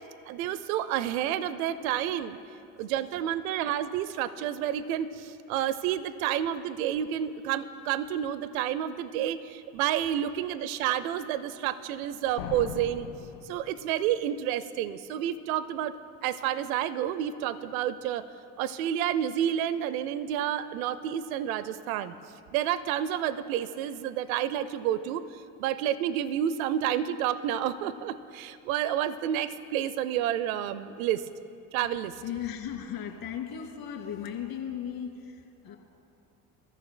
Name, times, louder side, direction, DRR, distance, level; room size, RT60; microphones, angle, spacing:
voice 1, 0.3-2.4 2.8-13.1 13.4-18.3 18.6-22.1 22.5-31.3 31.7-32.1, right 10 dB, 85° right, 15 dB, 0.6 m, -30 dB
sound 1, 12.4-14.2, left 8 dB, 85° left, 1.4 m, -40 dB
voice 2, 32.2-35.8, left 9 dB, 60° left, 2 dB, 2.5 m, -36 dB
27.0 x 14.0 x 2.2 m, 2.7 s
hypercardioid pair, 75°, 41 cm